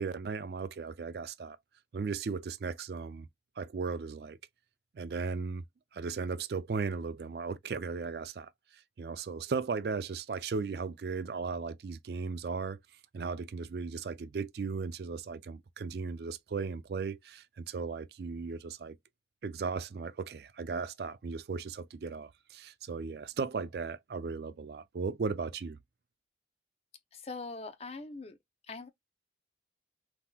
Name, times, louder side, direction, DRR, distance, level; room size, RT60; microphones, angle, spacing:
voice 1, 0.0-1.6 1.9-3.3 3.6-4.4 4.9-5.6 5.9-12.8 13.1-19.0 19.4-25.8, right 4 dB, 60° right, 0.4 m, -36 dB
voice 2, 27.1-28.4 28.7-28.9, left 3 dB, 35° left, 0.6 m, -42 dB
3.6 x 2.9 x 2.2 m
head